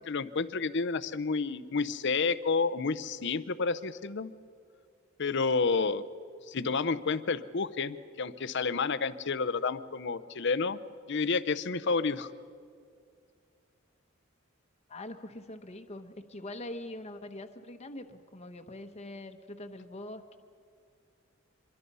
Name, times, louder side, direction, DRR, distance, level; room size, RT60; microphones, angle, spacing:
voice 1, 0.1-4.3 5.2-6.0 6.5-10.8 11.1-12.3, left 4 dB, 60° left, 15 dB, 0.7 m, -30 dB
voice 2, 14.9-20.4, left 1 dB, 35° left, 7 dB, 1.1 m, -43 dB
25.5 x 23.0 x 5.5 m, 2.2 s
head